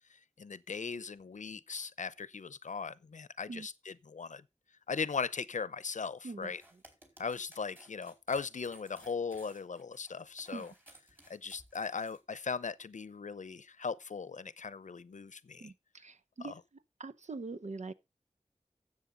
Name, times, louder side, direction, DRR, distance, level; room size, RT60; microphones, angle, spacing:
voice 1, 0.4-4.4 4.9-6.6 7.2-10.7 11.3-15.7 16.4-16.5, left 5 dB, 90° left, 0.7 m, -38 dB
voice 2, 6.2-6.6 10.5-10.7 15.6-16.6 17.0-17.9, right 3 dB, 70° right, 0.8 m, -43 dB
sound 1, 6.4-12.2, right 1 dB, 15° right, 4.6 m, -58 dB
13.0 x 8.0 x 3.9 m
wide cardioid pair, 55°, 12 cm